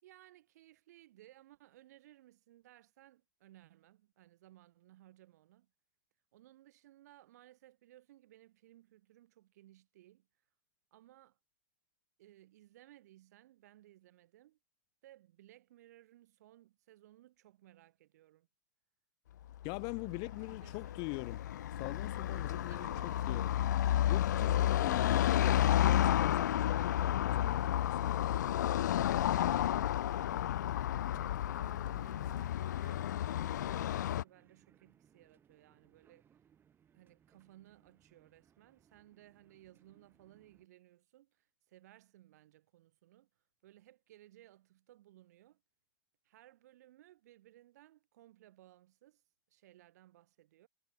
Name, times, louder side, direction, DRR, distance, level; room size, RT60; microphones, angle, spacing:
voice 1, 0.0-5.7 6.3-10.3 10.9-11.4 12.2-14.6 15.0-18.5 20.0-21.1 22.3-23.5 29.2-30.6 31.0-36.3 36.9-43.3 43.6-45.6 46.2-49.2 49.5-50.7, right 14 dB, 60° right, 3.7 m, -61 dB
Car passing by / Traffic noise roadway noise, 19.5-34.2, left 12 dB, 65° left, 0.4 m, -32 dB
voice 2, 19.6-21.4 21.8-23.6 24.0-28.3, left 34 dB, 40° left, 0.8 m, -43 dB
sound 1, 30.1-40.7, right 8 dB, 20° right, 7.9 m, -70 dB
hypercardioid pair, 115°, 10 cm